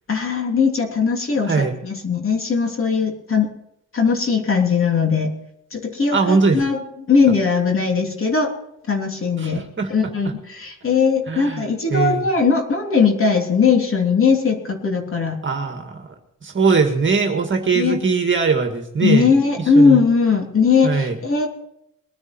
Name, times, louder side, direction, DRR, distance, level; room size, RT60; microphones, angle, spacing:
voice 1, 0.1-3.5 3.9-5.4 5.7-6.8 7.1-8.5 8.9-9.6 9.9-15.4 17.7-18.0 19.0-21.5, left 5 dB, 40° left, 2 dB, 3.2 m, -19 dB
voice 2, 6.1-6.6 9.4-9.9 11.3-12.2 15.4-16.1 16.4-19.3 19.8-20.0 20.8-21.2, right 4 dB, 35° right, 4 dB, 2.0 m, -20 dB
22.0 x 9.8 x 4.5 m, 0.76 s
cardioid pair, 110°, 32 cm